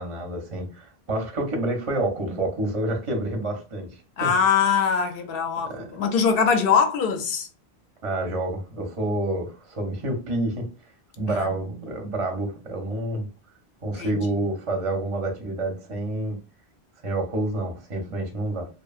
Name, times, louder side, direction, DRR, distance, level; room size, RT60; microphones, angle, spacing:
voice 1, 0.0-4.3 5.7-5.9 8.0-10.6 11.2-13.3 13.8-16.4 17.0-18.7, right 1 dB, 40° right, 0.6 m, -28 dB
voice 2, 4.2-7.5 11.3-11.9 14.0-14.2, left 6 dB, 65° left, 0.7 m, -23 dB
2.7 x 2.1 x 2.3 m
omnidirectional pair, 1.1 m